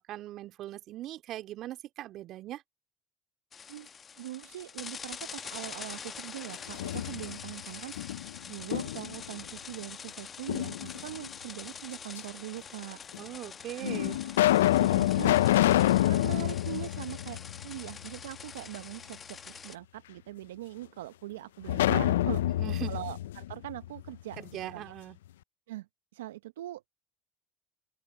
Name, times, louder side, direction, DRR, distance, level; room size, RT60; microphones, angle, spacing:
voice 1, 0.0-2.6 13.2-14.2 22.6-23.0 24.4-25.2, right 14 dB, 55° right, 2.3 m, -40 dB
sound 1, 3.5-19.8, left 6 dB, 35° left, 1.1 m, -45 dB
voice 2, 4.1-8.0 8.5-13.0 13.7-14.2 14.8-15.4 16.1-22.6 22.9-24.9 25.7-25.9 26.1-26.8, right 15 dB, 80° right, 0.8 m, -42 dB
sound 2, 6.5-7.5 8.0-9.2 10.5-11.3 12.2-12.3 13.1-13.2 13.8-17.9 18.3-18.4 21.7-24.5, left 14 dB, 80° left, 0.4 m, -27 dB
open air
hypercardioid pair, 70°, 0 cm